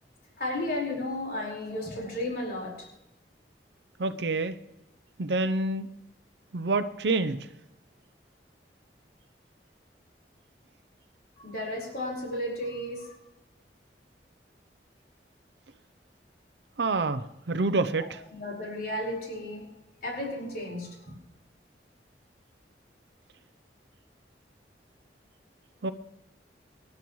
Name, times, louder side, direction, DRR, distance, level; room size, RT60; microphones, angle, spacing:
voice 1, 0.4-2.9 11.4-13.1 18.0-19.7 20.0-21.2, left 1 dB, 55° left, 4.8 m, -34 dB
voice 2, 4.0-4.5 5.2-5.9 6.5-7.4 16.8-18.2 25.8-25.9, right 3 dB, 75° right, 0.6 m, -27 dB
25.0 x 11.0 x 3.1 m
head